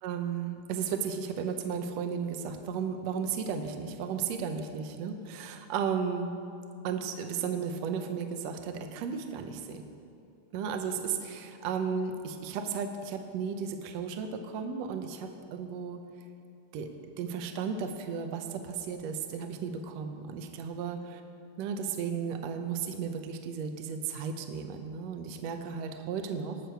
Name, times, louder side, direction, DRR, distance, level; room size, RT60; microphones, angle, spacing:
voice 1, 0.0-6.3 6.8-9.8 10.5-16.0 16.7-16.9 17.2-21.2 21.6-26.6, right 6 dB, 85° right, 6 dB, 1.5 m, -34 dB
20.0 x 6.8 x 4.6 m, 2.5 s
omnidirectional pair, 4.0 m